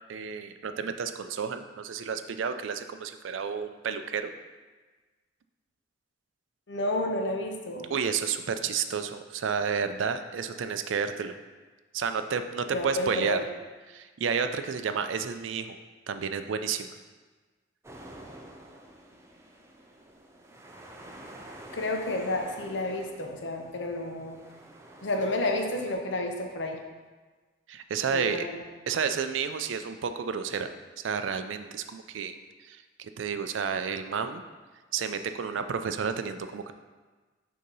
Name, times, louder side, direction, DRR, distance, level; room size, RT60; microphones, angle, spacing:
voice 1, 0.1-4.3 7.9-11.4 11.9-13.4 13.9-15.8 16.1-16.9 27.7-28.5 28.9-30.7 31.0-32.3 32.6-34.4 34.9-36.7, right 6 dB, 80° right, 9 dB, 0.4 m, -31 dB
voice 2, 6.7-7.9 12.7-13.4 21.7-24.4 25.0-26.8 28.1-28.5, left 1 dB, 65° left, 3 dB, 0.7 m, -30 dB
sound 1, 17.8-25.9, right 1 dB, 15° right, 0.5 m, -48 dB
6.3 x 2.8 x 5.4 m, 1.3 s
head